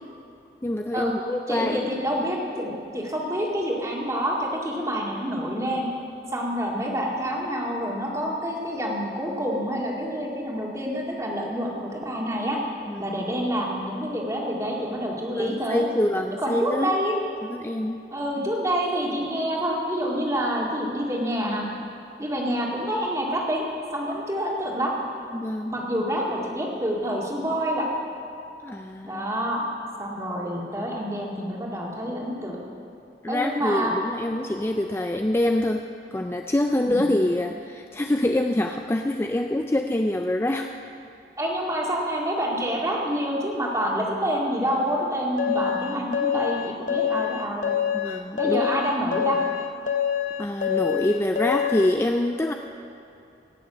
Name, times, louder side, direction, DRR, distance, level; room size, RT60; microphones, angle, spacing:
voice 1, 0.6-1.8 12.9-13.2 15.4-16.9 17.5-18.0 25.3-25.7 28.6-29.2 33.2-35.8 36.1-40.7 47.9-48.6 50.4-52.5, left 1 dB, 15° left, 5 dB, 0.4 m, -25 dB
voice 2, 1.5-5.9 6.3-12.6 13.0-15.9 16.4-17.2 18.1-21.6 22.2-23.7 23.9-24.9 25.7-27.9 29.0-29.6 30.0-32.6 33.3-33.9 36.9-37.0 41.4-47.8 48.4-49.4, equal, 15° right, -2 dB, 2.2 m, -27 dB
sound 1, 45.4-51.9, left 9 dB, 45° left, 1.0 m, -26 dB
18.0 x 6.9 x 8.6 m, 2.7 s
head